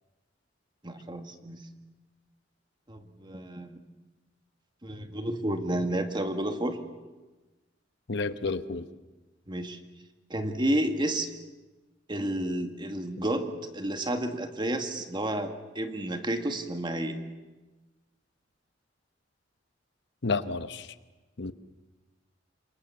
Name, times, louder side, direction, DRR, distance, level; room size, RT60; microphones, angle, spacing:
voice 1, 0.8-1.6 2.9-3.8 4.8-6.8 9.5-9.8 10.3-11.3 12.1-17.2, right 1 dB, 25° right, 6 dB, 2.1 m, -31 dB
voice 2, 8.1-8.8 20.2-20.9 21.4-21.5, left 3 dB, 65° left, 11 dB, 1.0 m, -30 dB
28.5 x 24.0 x 7.2 m, 1.2 s
head